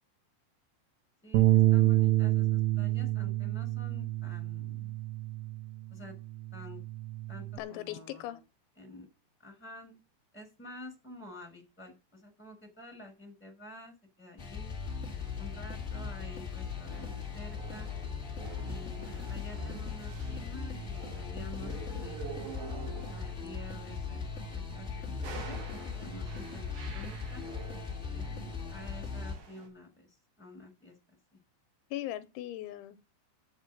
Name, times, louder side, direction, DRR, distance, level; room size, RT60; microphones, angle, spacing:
voice 1, 1.2-4.9 5.9-6.1 6.5-6.8 7.3-8.2 8.8-9.1 9.4-10.0 10.3-14.8 15.4-17.9 18.6-22.3 23.1-27.4 28.1-31.4, left 1 dB, ahead, 5.2 m, -49 dB
Bass guitar, 1.3-5.8 6.2-7.6, right 16 dB, 75° right, 2.9 m, -28 dB
voice 2, 7.6-8.4 31.9-33.2, left 14 dB, 85° left, 3.1 m, -39 dB
sound 1, 14.4-29.4, left 5 dB, 30° left, 1.3 m, -39 dB
sound 2, 14.8-29.7, right 6 dB, 55° right, 3.8 m, -49 dB
8.2 x 7.5 x 7.4 m
omnidirectional pair, 5.4 m